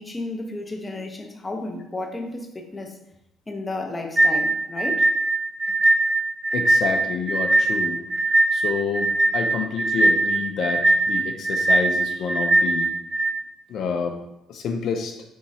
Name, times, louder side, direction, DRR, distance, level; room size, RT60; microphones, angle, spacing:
voice 1, 0.0-3.0 3.5-5.1, left 2 dB, 15° left, 3 dB, 0.6 m, -32 dB
sound 1, 4.2-13.3, right 2 dB, 20° right, 0.6 m, -20 dB
voice 2, 6.5-8.0 8.5-12.9 13.7-14.2 14.5-15.2, left 5 dB, 65° left, 4 dB, 0.5 m, -28 dB
3.6 x 2.9 x 4.1 m, 0.83 s
cardioid pair, 105°, 0 cm